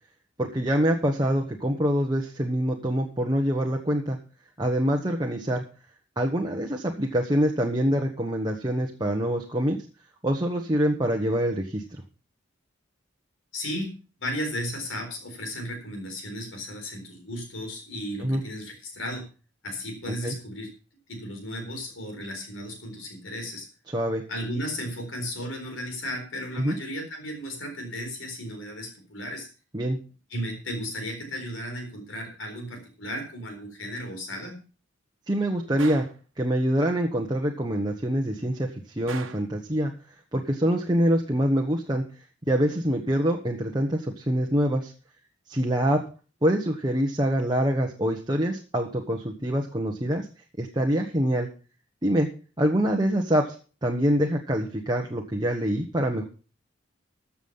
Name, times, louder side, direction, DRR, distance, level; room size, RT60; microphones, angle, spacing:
voice 1, 0.4-4.2 4.6-5.6 6.2-9.8 10.2-11.8 18.2-18.4 20.2-20.3 23.9-24.2 26.6-26.7 29.7-30.0 35.3-36.1 36.4-38.7 39.0-39.9 40.3-42.0 42.5-44.9 45.5-46.0 46.4-50.2 50.6-51.5 52.0-52.3 52.6-53.5 53.8-56.2, equal, 20° right, 1 dB, 1.3 m, -25 dB
voice 2, 13.5-19.3 19.6-20.7 21.1-23.7 24.3-29.5 30.3-34.6, equal, 80° left, 4 dB, 4.1 m, -35 dB
Gunshot gunfire, 35.8-36.2 39.1-39.5, right 5 dB, 85° right, 1.2 m, -39 dB
14.5 x 7.3 x 5.6 m, 0.37 s
head